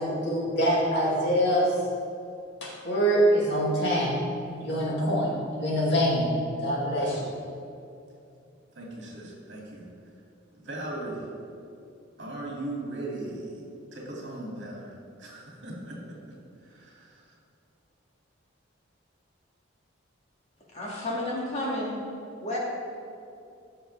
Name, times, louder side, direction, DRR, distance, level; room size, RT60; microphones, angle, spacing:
voice 1, 0.0-1.7 2.6-4.2 4.6-6.3 6.6-7.2, equal, 60° left, -5 dB, 2.5 m, -24 dB
voice 2, 8.7-9.9 10.5-11.3 12.2-13.6 13.9-14.9 15.2-16.1 16.6-17.3, right 2 dB, 65° right, -3 dB, 2.5 m, -38 dB
voice 3, 20.7-22.0 22.4-22.6, left 1 dB, 35° left, -5 dB, 2.3 m, -31 dB
15.5 x 6.5 x 3.4 m, 2.6 s
head